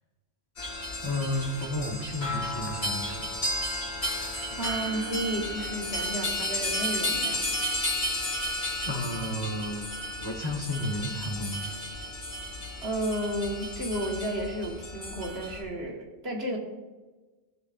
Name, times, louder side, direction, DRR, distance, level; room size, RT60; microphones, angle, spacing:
sound 1, 0.6-15.6, left 1 dB, 75° left, 3.8 m, -33 dB
voice 1, 1.0-3.3 3.7-3.8 4.5-4.7 8.8-11.6, left 1 dB, 20° left, -1 dB, 1.3 m, -32 dB
voice 2, 4.6-7.4 12.8-16.6, right 1 dB, 70° right, -1 dB, 2.0 m, -32 dB
18.0 x 7.1 x 2.5 m, 1.2 s
omnidirectional pair, 1.1 m